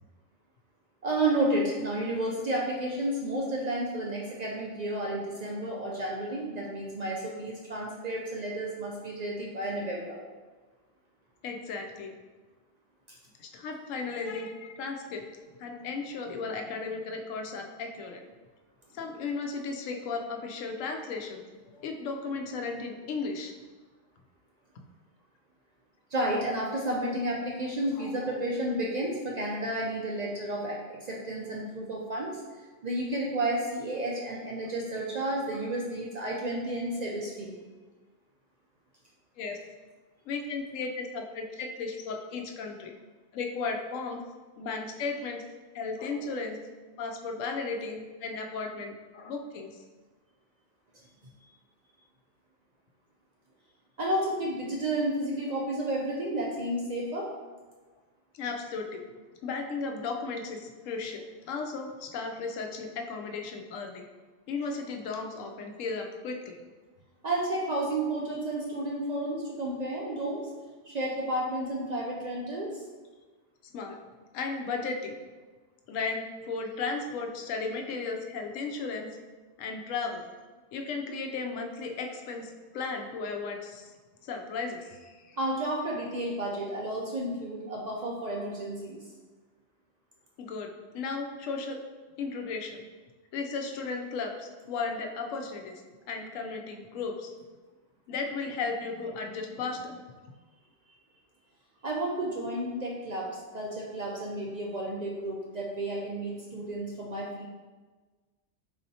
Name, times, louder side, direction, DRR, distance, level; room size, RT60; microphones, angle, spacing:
voice 1, 1.0-10.2 26.1-32.4 32.8-37.6 54.0-57.3 67.2-70.5 70.8-72.8 85.4-89.0 101.8-107.5, right 1 dB, 60° right, -3 dB, 0.4 m, -31 dB
voice 2, 11.4-12.2 13.4-15.2 15.6-18.2 18.9-23.5 28.0-28.4 35.5-35.6 39.4-39.6 40.3-42.9 43.3-44.2 44.6-45.4 45.7-46.6 47.0-49.8 58.3-59.0 59.4-64.1 64.5-66.6 73.7-74.0 74.3-75.2 75.9-79.1 79.6-80.2 80.7-83.9 84.2-85.4 90.4-91.8 92.2-92.8 93.3-95.8 96.1-97.3 98.1-100.0, left 4 dB, 85° left, 3 dB, 0.9 m, -35 dB
4.1 x 4.1 x 2.7 m, 1.3 s
omnidirectional pair, 1.3 m